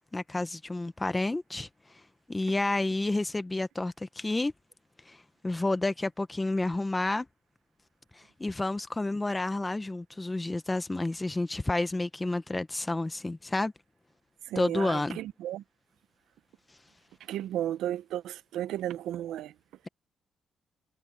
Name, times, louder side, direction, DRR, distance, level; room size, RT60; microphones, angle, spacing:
voice 1, 0.1-1.7 2.3-4.5 5.1-7.3 8.1-13.7 14.5-15.2, left 2 dB, 15° left, 1.0 m, -30 dB
voice 2, 14.5-15.6 17.3-19.5, right 12 dB, 85° right, 0.8 m, -34 dB
cardioid pair, 90°, 0 cm